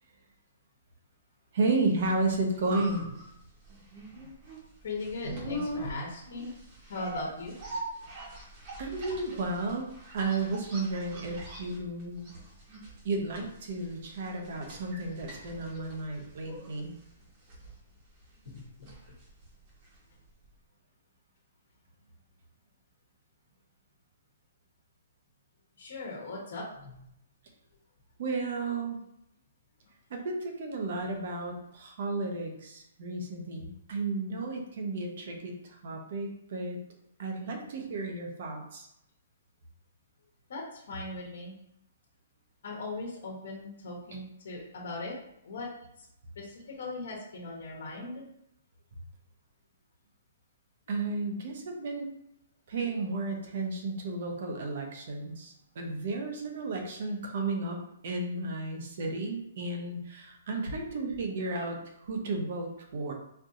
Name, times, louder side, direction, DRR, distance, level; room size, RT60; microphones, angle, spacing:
voice 1, 1.5-3.1 8.8-9.9 10.1-12.3 13.0-17.0 28.2-29.0 30.1-36.8 37.2-38.9 44.1-44.2 50.9-52.1 52.7-57.8 58.0-63.1, right 3 dB, 55° right, 3 dB, 0.9 m, -33 dB
sound 1, 2.1-20.2 20.4-20.5, right 1 dB, 35° right, 1.1 m, -43 dB
voice 2, 4.8-6.5 6.8-7.5 18.4-18.9 25.8-27.0 31.0-31.1 40.5-41.5 42.6-45.2 45.4-45.7 46.0-46.1 46.3-48.2, left 3 dB, 65° left, -2 dB, 1.1 m, -39 dB
4.4 x 2.7 x 2.5 m, 0.77 s
hypercardioid pair, 165°, 0 cm